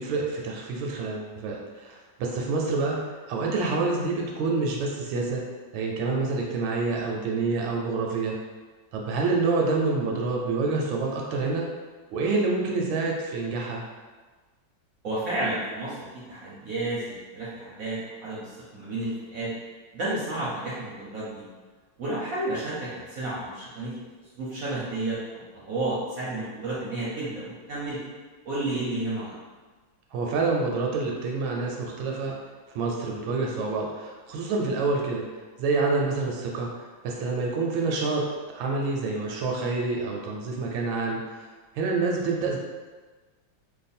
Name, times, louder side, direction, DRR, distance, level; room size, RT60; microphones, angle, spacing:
voice 1, 0.0-3.0 3.3-5.4 5.7-8.4 8.9-11.7 12.1-13.8 30.1-32.3 32.7-35.2 35.6-38.2 38.5-41.4 41.7-42.6, right 3 dB, 80° right, -1 dB, 1.3 m, -27 dB
voice 2, 15.0-19.5 19.9-21.4 22.0-23.9 24.4-25.2 25.7-28.0 28.4-29.3, right 2 dB, 65° right, -8 dB, 0.9 m, -31 dB
3.2 x 2.2 x 4.1 m, 1.4 s
omnidirectional pair, 2.2 m